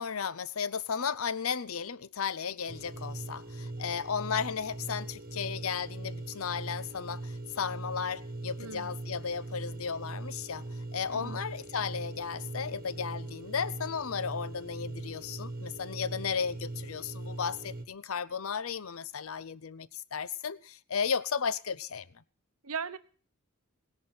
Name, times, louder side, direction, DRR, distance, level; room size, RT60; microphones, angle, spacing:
voice 1, 0.0-10.6 10.9-22.1, left 6 dB, 70° left, 0.7 m, -34 dB
sound 1, 2.7-17.9, right 2 dB, 40° right, 1.3 m, -41 dB
voice 2, 8.6-9.0 11.1-11.4 22.6-23.0, right 5 dB, 80° right, 1.0 m, -38 dB
18.0 x 10.5 x 6.0 m
head